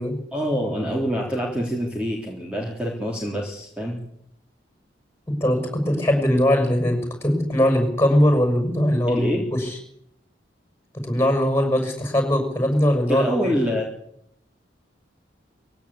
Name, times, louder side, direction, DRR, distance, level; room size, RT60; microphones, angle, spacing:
voice 1, 0.3-4.0 9.1-9.4 13.1-13.8, equal, 5° right, -2 dB, 3.4 m, -26 dB
voice 2, 5.3-9.8 11.0-13.5, equal, 15° left, 5 dB, 6.1 m, -21 dB
21.0 x 16.5 x 8.5 m, 0.73 s
head